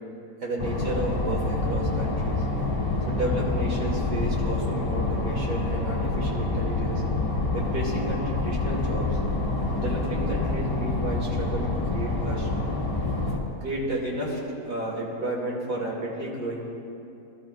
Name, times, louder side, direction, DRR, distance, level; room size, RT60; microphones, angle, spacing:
voice 1, 0.4-2.4 3.1-7.0 7.5-9.2 9.7-12.5 13.6-14.4 14.6-16.6, right 1 dB, 70° right, -4 dB, 3.1 m, -32 dB
sound 1, 0.6-13.4, left 2 dB, 15° left, 1.3 m, -27 dB
21.5 x 12.5 x 2.5 m, 2.7 s
omnidirectional pair, 1.8 m